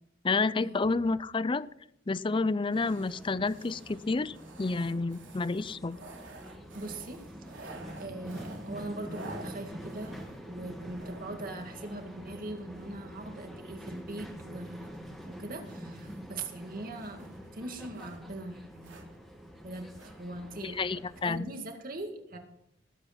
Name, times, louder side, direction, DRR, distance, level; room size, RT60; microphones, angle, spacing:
voice 1, 0.2-1.7 2.1-6.0 20.6-21.5, left 3 dB, 25° left, 18 dB, 0.4 m, -30 dB
sound 1, 0.8-1.5 2.4-2.5 2.7-13.0 13.7-18.3 18.7-19.2 19.9-20.2 20.5-20.6, right 2 dB, 80° right, 3.0 m, -51 dB
sound 2, 2.7-21.4, equal, ahead, 2.0 m, -46 dB
voice 2, 6.7-10.2 10.5-14.9 15.3-19.1 19.6-20.8 21.2-22.4, right 2 dB, 50° right, 5 dB, 2.1 m, -41 dB
19.0 x 8.2 x 5.9 m, 0.77 s
head